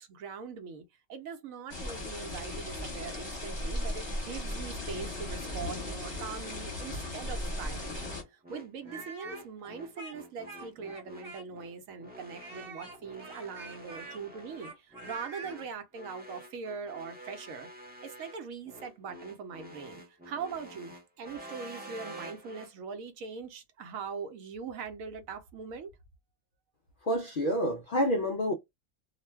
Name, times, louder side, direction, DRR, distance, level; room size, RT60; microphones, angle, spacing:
voice 1, 0.0-17.7 18.0-25.9, right 5 dB, 75° right, 1.0 m, -42 dB
sound 1, 1.7-8.2, left 1 dB, 20° left, 1.0 m, -37 dB
sound 2, 5.4-22.7, equal, 15° right, 0.4 m, -49 dB
Speech, 8.8-11.7 12.3-15.6, right 3 dB, 35° right, 0.9 m, -46 dB
voice 2, 27.0-28.5, equal, 70° left, 0.5 m, -28 dB
2.4 x 2.2 x 3.2 m
omnidirectional pair, 1.5 m